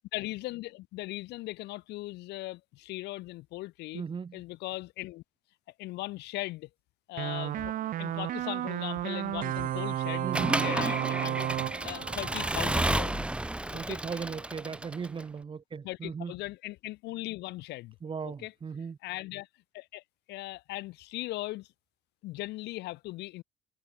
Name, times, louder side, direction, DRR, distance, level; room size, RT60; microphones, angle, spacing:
voice 1, 0.1-4.0 4.3-5.2 5.8-6.7 7.1-10.3 10.6-11.5 11.8-13.3 13.7-14.0 15.8-18.0 18.2-18.5 19.0-19.5 19.7-20.0 20.3-21.7 22.2-23.4, left 19 dB, 85° left, 5.0 m, -38 dB
voice 2, 3.9-4.4 10.2-10.6 13.7-16.3 18.0-19.0, right 6 dB, 30° right, 1.4 m, -37 dB
sound 1, 7.2-13.3, right 13 dB, 55° right, 0.5 m, -33 dB
Accelerating revving vroom / Mechanisms, 10.3-15.2, right 1 dB, 5° right, 0.9 m, -31 dB
cardioid pair, 110°, 17 cm